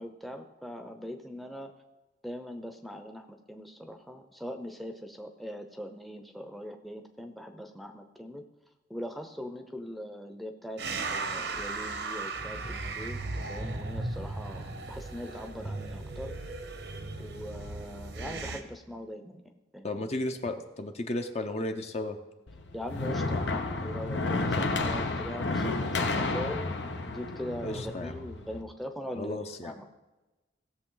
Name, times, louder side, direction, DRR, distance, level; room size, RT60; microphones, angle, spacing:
voice 1, 0.0-1.7 2.2-8.4 8.9-10.8 11.1-16.3 17.2-20.1 22.7-29.9, equal, ahead, 6 dB, 0.7 m, -41 dB
sound 1, 10.8-18.6, right 3 dB, 75° right, 1.0 m, -36 dB
voice 2, 19.8-22.2 27.6-28.1 29.1-29.7, left 2 dB, 35° left, 6 dB, 0.7 m, -34 dB
sound 2, 22.5-28.6, left 3 dB, 80° left, 1.0 m, -31 dB
17.5 x 7.0 x 3.9 m, 1.1 s
head